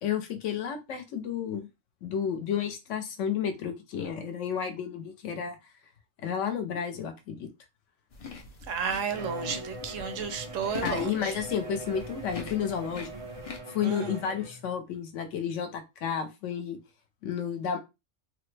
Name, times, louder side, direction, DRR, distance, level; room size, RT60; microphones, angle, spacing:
voice 1, 0.0-1.7 2.0-5.6 6.2-7.5 10.8-13.1 13.7-16.8 17.2-17.8, left 8 dB, 70° left, 0.9 m, -31 dB
sound 1, 8.1-13.6, left 5 dB, 55° left, 0.4 m, -43 dB
voice 2, 8.7-11.3 13.8-14.2, right 6 dB, 75° right, 0.9 m, -33 dB
Bowed string instrument, 9.1-14.7, right 1 dB, 35° right, 0.5 m, -41 dB
3.2 x 2.0 x 3.2 m
omnidirectional pair, 1.4 m